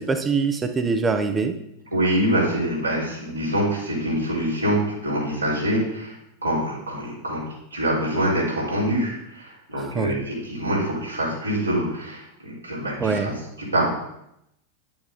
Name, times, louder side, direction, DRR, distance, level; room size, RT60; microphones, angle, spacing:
voice 1, 0.0-1.6 9.7-10.2 13.0-13.3, right 4 dB, 20° right, 8 dB, 1.0 m, -24 dB
voice 2, 1.9-6.2 6.4-13.3 13.6-14.0, right 1 dB, 85° right, -6 dB, 4.4 m, -25 dB
10.0 x 8.8 x 4.2 m, 0.80 s
figure-of-eight pair, 90°, 0 cm